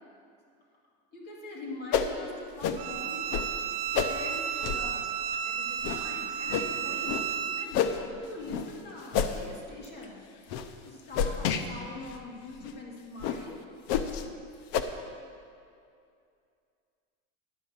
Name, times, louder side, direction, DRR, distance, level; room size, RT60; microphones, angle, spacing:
voice 1, 1.1-3.3 4.0-5.1 5.4-10.5 10.8-13.6, left 2 dB, 30° left, -3 dB, 2.1 m, -43 dB
sound 1, 1.9-2.1 2.6-2.8 3.3-3.5 3.9-4.1 4.6-4.9 5.3-5.4 5.8-6.0 6.5-6.7 7.0-7.3 7.7-8.0 8.5-8.7 9.1-9.4 9.8-10.0 10.5-10.7 11.1-11.6 12.1-12.2 12.6-12.7 13.2-13.4 13.9-14.2 14.7-14.8, left 7 dB, 50° left, 0.6 m, -28 dB
Bowed string instrument, 2.8-7.7, right 9 dB, 50° right, 0.6 m, -33 dB
11.0 x 5.4 x 7.3 m, 2.4 s
cardioid pair, 165°, 33 cm